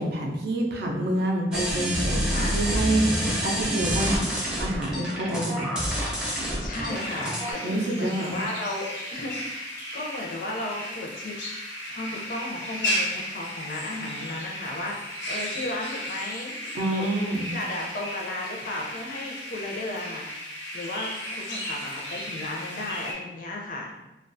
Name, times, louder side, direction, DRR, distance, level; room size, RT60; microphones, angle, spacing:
voice 1, 0.0-3.0 3.4-4.3 4.6-5.8 7.6-8.4 16.7-17.6, right 1 dB, 65° right, 1 dB, 0.4 m, -27 dB
sound 1, 1.5-7.5, equal, 5° right, 0.5 m, -27 dB
voice 2, 2.3-2.6 6.6-11.4 11.9-16.5 16.9-17.1 17.4-23.9, left 2 dB, 50° left, 0 dB, 0.5 m, -35 dB
sound 2, 6.9-23.1, equal, 90° left, 0.7 m, -35 dB
2.3 x 2.3 x 2.5 m, 0.99 s
head